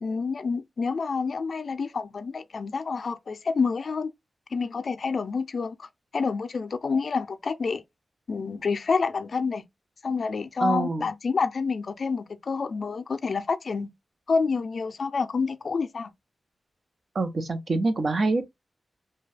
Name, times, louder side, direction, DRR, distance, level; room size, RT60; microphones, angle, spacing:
voice 1, 0.0-4.1 4.5-5.9 6.1-7.8 8.3-9.7 10.0-13.9 14.3-16.1, left 4 dB, 60° left, 0.4 m, -28 dB
voice 2, 10.6-11.1 17.1-18.5, right 3 dB, 60° right, 0.7 m, -25 dB
2.7 x 2.3 x 3.2 m
cardioid pair, 75°, 0 cm